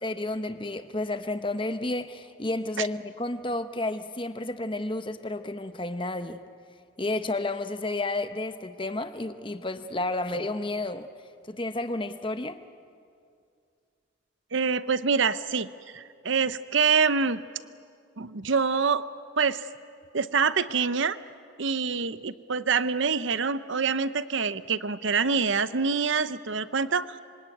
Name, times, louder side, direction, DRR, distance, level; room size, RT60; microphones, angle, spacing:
voice 1, 0.0-6.4 7.0-11.1 11.5-12.6, left 2 dB, 25° left, 9 dB, 1.0 m, -31 dB
voice 2, 14.5-17.4 18.2-19.1 19.4-19.6 20.1-21.2 21.6-27.1, right 5 dB, 65° right, 14 dB, 0.8 m, -25 dB
26.5 x 24.0 x 9.2 m, 2.4 s
head